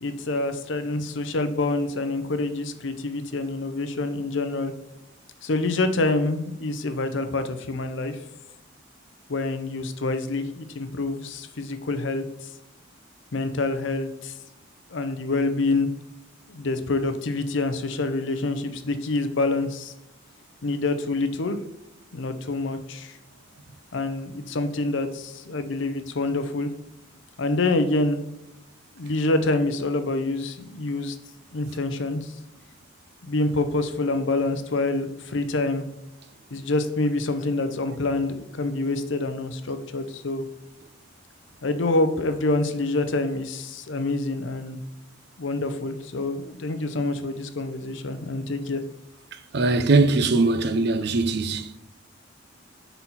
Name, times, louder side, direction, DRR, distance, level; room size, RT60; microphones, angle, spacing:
voice 1, 0.0-4.7 5.4-8.2 9.3-12.2 13.3-14.3 14.9-15.9 16.5-19.9 20.6-21.6 22.1-23.2 23.9-26.7 27.4-28.2 29.0-31.2 31.5-32.3 33.2-35.9 36.5-40.5 41.6-44.8 45.4-48.8, left 2 dB, 65° left, 0.6 m, -26 dB
voice 2, 49.5-51.8, right 3 dB, 55° right, 0.5 m, -21 dB
5.6 x 4.0 x 4.3 m
head